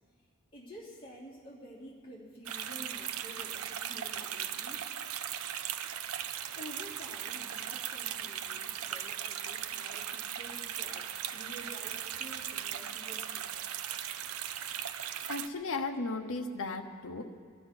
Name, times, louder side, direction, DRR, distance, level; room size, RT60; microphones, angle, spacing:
voice 1, 0.5-4.8 6.5-13.7, equal, 25° left, -6 dB, 3.2 m, -50 dB
sound 1, 2.5-15.5, right 10 dB, 70° right, 0.6 m, -38 dB
voice 2, 15.3-17.2, left 3 dB, 65° left, 4 dB, 1.1 m, -35 dB
18.5 x 12.5 x 6.0 m, 2.2 s
head